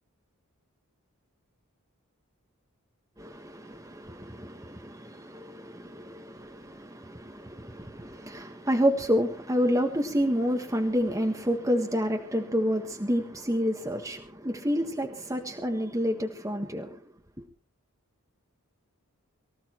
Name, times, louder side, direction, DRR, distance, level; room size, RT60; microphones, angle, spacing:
voice 1, 3.2-17.0, equal, 15° right, 1.5 m, -29 dB
24.0 x 15.5 x 3.1 m
head